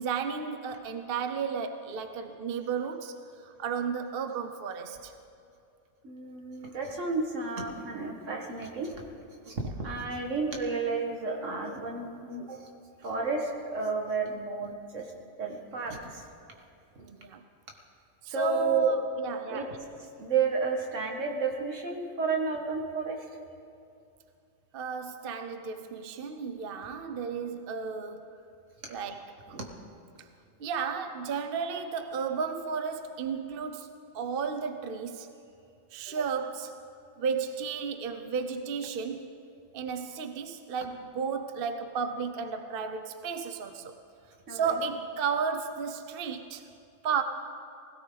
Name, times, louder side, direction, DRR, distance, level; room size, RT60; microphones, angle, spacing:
voice 1, 0.0-3.1 3.4-5.1 9.5-9.6 17.0-17.4 18.2-19.8 24.7-28.2 28.9-29.3 30.6-33.9 34.1-35.3 35.9-36.8 37.2-39.3 39.7-43.9 44.5-46.6 47.0-47.2, right 6 dB, 55° right, 8 dB, 0.8 m, -33 dB
voice 2, 6.0-8.9 9.5-9.6 9.8-12.6 13.0-15.1 15.4-16.2 18.3-18.9 19.5-19.7 20.2-23.2 29.5-29.7 44.5-44.7, right 4 dB, 80° right, 1 dB, 2.0 m, -31 dB
20.5 x 16.5 x 3.9 m, 2.6 s
omnidirectional pair, 1.3 m